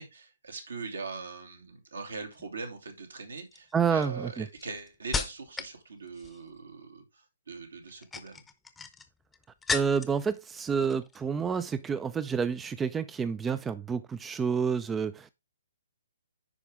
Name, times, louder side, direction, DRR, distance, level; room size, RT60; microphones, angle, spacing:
voice 1, 0.0-8.4, right 4 dB, 75° right, 2.5 m, -41 dB
sound 1, 2.3-2.7 3.4-5.8 6.1-6.6 7.8-10.2 10.5-11.2 11.5-11.7, left 5 dB, 10° left, 0.8 m, -36 dB
voice 2, 3.7-4.5 9.7-15.4, right 6 dB, 10° right, 0.4 m, -29 dB
9.9 x 5.0 x 3.5 m
figure-of-eight pair, 135°, 0 cm